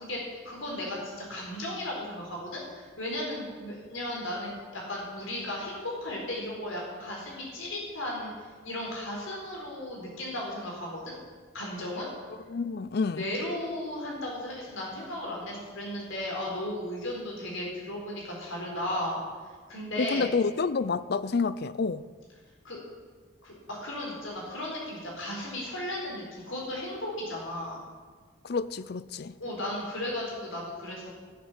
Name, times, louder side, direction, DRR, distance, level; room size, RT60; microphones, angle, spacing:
voice 1, 0.0-8.3 8.6-11.2 11.5-12.1 13.2-19.2 19.7-20.3 22.6-22.8 23.4-27.8 29.4-31.1, left 1 dB, 70° left, 4.3 m, -35 dB
voice 2, 12.5-13.2 20.0-22.0 28.4-29.3, left 4 dB, 50° left, 0.4 m, -28 dB
15.0 x 7.4 x 7.3 m
head